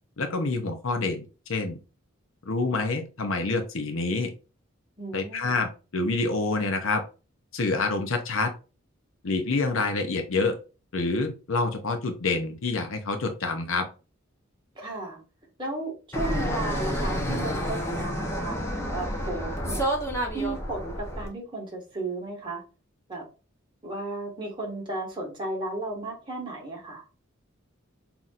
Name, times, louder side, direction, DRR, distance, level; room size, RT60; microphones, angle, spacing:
voice 1, 0.2-1.8 2.5-4.3 5.1-7.0 7.5-8.5 9.2-10.6 10.9-13.9, left 3 dB, 70° left, 6 dB, 0.7 m, -27 dB
voice 2, 5.0-5.5 14.7-15.2 15.6-19.9 20.3-22.6 23.1-23.2 23.8-27.0, right 2 dB, 25° right, -1 dB, 1.7 m, -34 dB
Fixed-wing aircraft airplane, 16.1-21.3, equal, 15° left, 0.9 m, -29 dB
5.6 x 2.9 x 2.5 m, 0.32 s
head